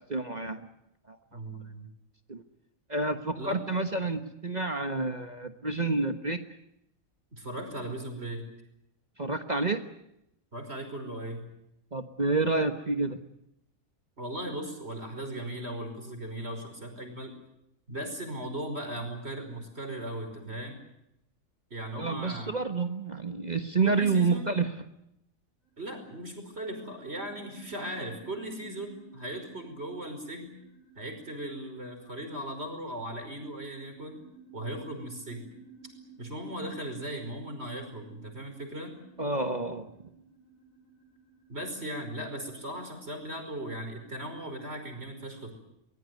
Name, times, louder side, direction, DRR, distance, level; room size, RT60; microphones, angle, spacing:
voice 1, 0.1-0.7 1.1-1.2 2.3-2.4 2.9-6.4 9.2-9.8 11.9-13.2 22.0-24.7 39.2-39.9, right 3 dB, 35° right, 8 dB, 1.4 m, -29 dB
voice 2, 1.3-1.9 3.3-3.6 7.4-8.4 10.5-11.5 14.2-17.4 17.9-20.8 21.7-22.5 23.8-24.5 25.8-30.5 31.0-34.2 34.5-35.5 36.2-39.0 41.5-45.5, right 1 dB, 50° right, 6 dB, 5.6 m, -38 dB
sound 1, 25.6-42.0, right 5 dB, 90° right, 7.4 m, -55 dB
24.0 x 20.5 x 9.4 m, 0.80 s
omnidirectional pair, 1.4 m